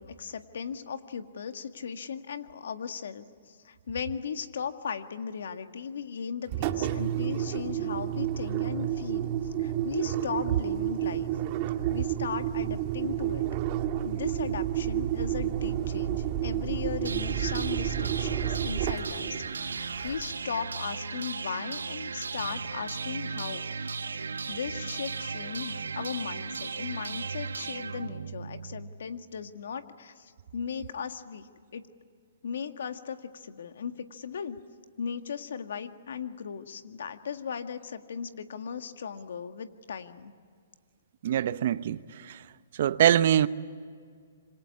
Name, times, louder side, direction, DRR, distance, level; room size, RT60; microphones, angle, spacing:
voice 1, 0.0-9.3 9.6-11.3 11.9-13.5 14.0-23.6 24.0-31.9 32.4-34.6 35.0-40.3, left 6 dB, 70° left, 1.8 m, -37 dB
Engine, 6.5-20.5, right 11 dB, 40° right, 1.8 m, -30 dB
sound 1, 17.0-29.0, right 5 dB, 90° right, 1.3 m, -36 dB
voice 2, 41.2-42.0 42.8-43.5, right 10 dB, 55° right, 0.9 m, -22 dB
26.5 x 25.5 x 8.5 m
hypercardioid pair, 135°, 0 cm